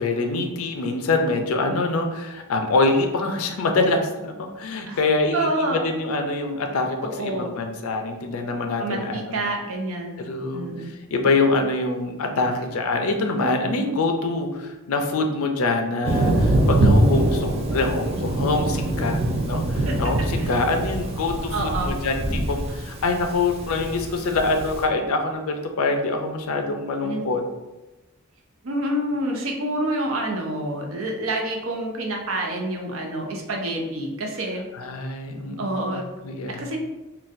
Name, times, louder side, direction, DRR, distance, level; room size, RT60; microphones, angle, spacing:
voice 1, 0.0-9.4 10.2-10.7 11.1-21.5 21.8-27.4 34.7-36.6, left 3 dB, 80° left, 5 dB, 0.5 m, -25 dB
voice 2, 5.3-5.8 7.0-7.5 8.8-10.2 10.5-10.9 19.9-20.0 20.4-20.5 21.5-21.9 27.0-27.2 28.6-34.7 35.6-36.0 36.5-36.8, right 1 dB, 70° right, 1 dB, 0.6 m, -27 dB
Thunder, 16.0-24.8, right 1 dB, 30° right, 0.4 m, -23 dB
3.9 x 2.3 x 2.5 m, 1.1 s
head